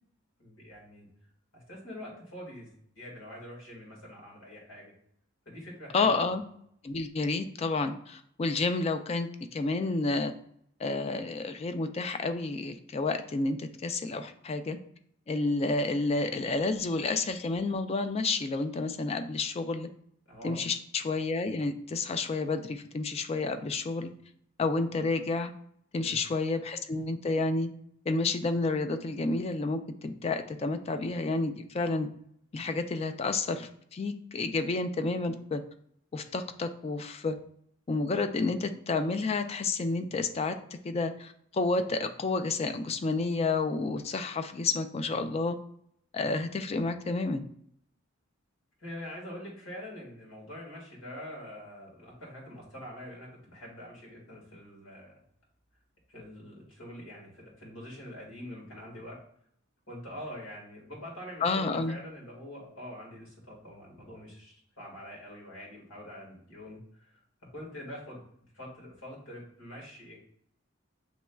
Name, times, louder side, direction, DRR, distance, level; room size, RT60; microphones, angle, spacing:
voice 1, 0.4-1.1 1.5-4.9 5.5-6.3 20.3-20.6 25.9-26.2 48.8-55.2 56.1-59.2 59.9-67.2 67.5-68.3 68.5-70.2, equal, 85° left, -3 dB, 1.8 m, -45 dB
voice 2, 5.9-6.4 6.8-10.3 10.8-14.8 15.3-19.9 20.4-24.1 24.6-25.5 25.9-27.7 28.1-32.1 32.5-35.6 36.1-37.4 37.9-45.6 46.1-47.5 61.4-62.0, left 3 dB, 30° left, 8 dB, 0.3 m, -30 dB
7.1 x 3.1 x 2.3 m, 0.68 s
head